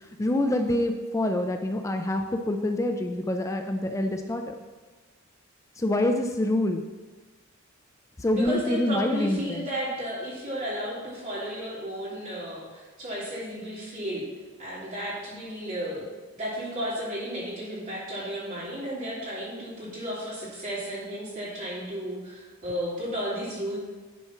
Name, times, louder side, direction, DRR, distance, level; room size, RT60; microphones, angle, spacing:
voice 1, 0.2-4.5 5.8-6.8 8.2-9.7, left 1 dB, 15° left, 5 dB, 0.4 m, -26 dB
voice 2, 8.3-14.3 14.6-16.1 16.4-23.8, equal, 40° right, -9 dB, 3.1 m, -33 dB
10.0 x 4.4 x 5.7 m, 1.3 s
head